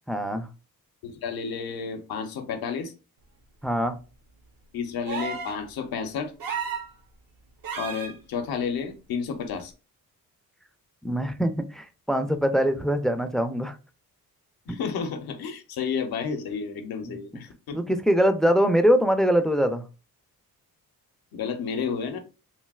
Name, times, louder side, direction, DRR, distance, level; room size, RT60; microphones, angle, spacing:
voice 1, 0.1-0.5 3.6-4.0 11.0-13.8 17.1-17.2 17.7-19.8, equal, ahead, 0.3 m, -23 dB
voice 2, 1.0-2.9 4.7-6.3 7.8-9.7 14.7-17.8 21.3-22.2, left 6 dB, 80° left, 0.7 m, -31 dB
sound 1, 5.1-5.6 6.4-6.9 7.6-8.1 9.6-9.7, right 6 dB, 70° right, 0.7 m, -32 dB
3.2 x 2.6 x 2.3 m
cardioid pair, 80°, 36 cm